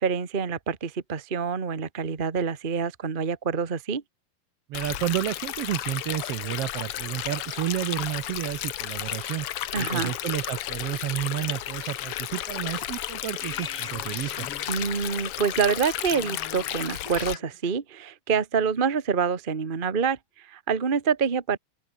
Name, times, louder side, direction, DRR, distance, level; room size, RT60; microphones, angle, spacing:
voice 1, 0.0-4.0 9.7-10.1 14.7-21.6, right 6 dB, 50° right, 0.5 m, -26 dB
Stream, 4.7-17.3, left 13 dB, 70° left, 1.4 m, -33 dB
voice 2, 4.7-9.5 9.8-14.5, right 13 dB, 75° right, 1.4 m, -31 dB
sound 1, 12.0-12.3 13.4-14.9 16.1-17.7, left 6 dB, 50° left, 3.4 m, -41 dB
open air
omnidirectional pair, 3.7 m